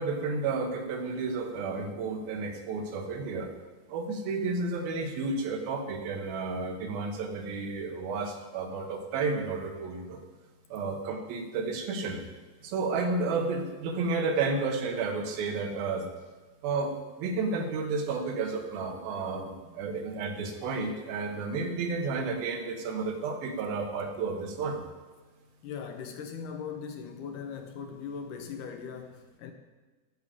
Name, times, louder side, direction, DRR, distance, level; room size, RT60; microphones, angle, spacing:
voice 1, 0.0-3.5 3.9-10.2 10.7-12.2 12.6-16.1 16.6-24.8, right 4 dB, 90° right, 3 dB, 3.1 m, -32 dB
voice 2, 25.6-29.5, left 6 dB, 70° left, 5 dB, 2.2 m, -39 dB
11.5 x 5.2 x 8.4 m, 1.3 s
omnidirectional pair, 4.1 m